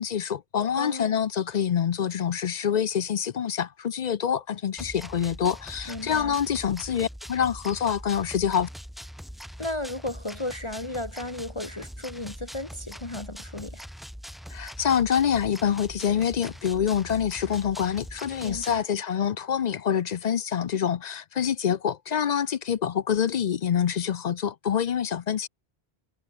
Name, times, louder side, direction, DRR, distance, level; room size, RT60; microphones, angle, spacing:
voice 1, 0.0-8.7 14.5-25.5, left 8 dB, 50° left, 0.6 m, -26 dB
voice 2, 0.7-1.2 5.9-6.4 9.6-13.8 18.4-18.8, left 1 dB, 30° left, 1.6 m, -34 dB
sound 1, 4.8-18.8, equal, ahead, 2.5 m, -42 dB
omnidirectional pair, 1.0 m